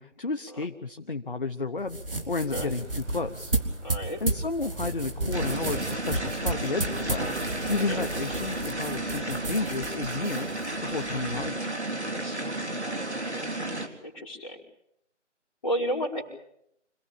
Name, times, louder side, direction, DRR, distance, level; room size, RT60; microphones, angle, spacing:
voice 1, 0.0-2.0 2.3-3.5 4.2-7.3 7.7-11.7, left 3 dB, 45° left, 8 dB, 1.1 m, -32 dB
sound 1, 1.8-11.5, right 2 dB, 50° right, 3.2 m, -33 dB
sound 2, 2.3-9.4, equal, 5° right, 1.1 m, -48 dB
voice 2, 3.8-4.2 7.9-8.0 12.1-12.5 14.0-14.6 15.6-16.2, equal, 25° left, 0 dB, 4.6 m, -32 dB
sound 3, 5.3-13.9, right 2 dB, 65° right, 3.9 m, -33 dB
26.5 x 18.0 x 8.7 m, 0.76 s
figure-of-eight pair, 160°, 36 cm